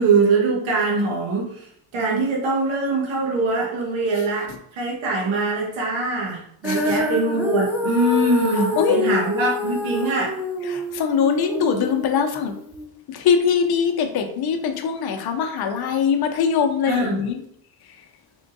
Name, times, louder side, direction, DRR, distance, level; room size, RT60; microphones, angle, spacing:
voice 1, 0.0-1.7 1.9-10.3 16.9-17.2, right 3 dB, 70° right, -3 dB, 1.3 m, -22 dB
voice 2, 6.6-7.0 8.8-9.0 10.7-12.6 13.1-17.4, left 7 dB, 50° left, 5 dB, 0.6 m, -22 dB
Female singing, 6.6-12.9, left 2 dB, 5° right, 0.5 m, -26 dB
3.6 x 3.4 x 2.6 m, 0.70 s
cardioid pair, 100°, 49 cm